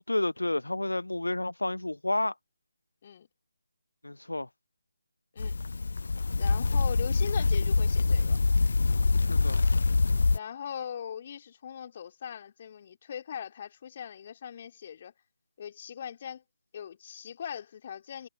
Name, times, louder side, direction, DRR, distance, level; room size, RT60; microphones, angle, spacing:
voice 1, 0.0-2.4 4.0-4.5 9.3-9.6, left 1 dB, 85° left, 0.8 m, -30 dB
sound 1, 5.4-10.4, left 4 dB, 60° left, 1.1 m, -25 dB
voice 2, 6.4-8.4 10.3-15.1 15.6-16.4 16.7-18.3, left 8 dB, 40° left, 4.6 m, -40 dB
figure-of-eight pair, 150°, 0 cm